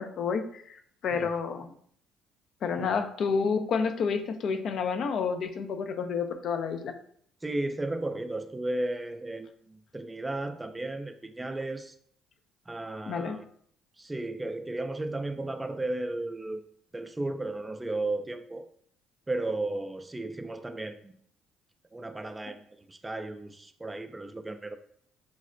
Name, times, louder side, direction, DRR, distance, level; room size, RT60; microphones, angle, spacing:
voice 1, 0.0-1.7 2.6-6.9 13.1-13.4, left 5 dB, 60° left, 7 dB, 0.4 m, -30 dB
voice 2, 7.4-11.9 12.7-13.4 14.0-16.6 16.9-18.6 19.3-21.1 21.9-24.8, right 2 dB, 15° right, 9 dB, 0.3 m, -34 dB
5.1 x 2.1 x 2.5 m, 0.63 s
supercardioid pair, 75°, 0 cm